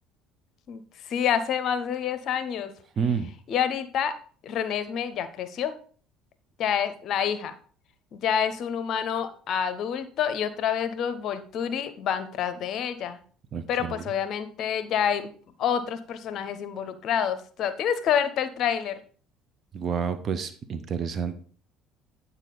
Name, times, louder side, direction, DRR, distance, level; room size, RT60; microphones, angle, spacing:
voice 1, 0.7-2.7 3.5-4.1 4.4-5.7 6.6-7.5 8.1-13.2 13.7-15.3 15.6-18.9, left 8 dB, 45° left, 12 dB, 0.7 m, -28 dB
voice 2, 3.0-3.3 13.5-14.0 19.7-21.3, right 6 dB, 40° right, 11 dB, 0.7 m, -29 dB
9.0 x 4.2 x 4.0 m, 0.43 s
figure-of-eight pair, 60°, 0 cm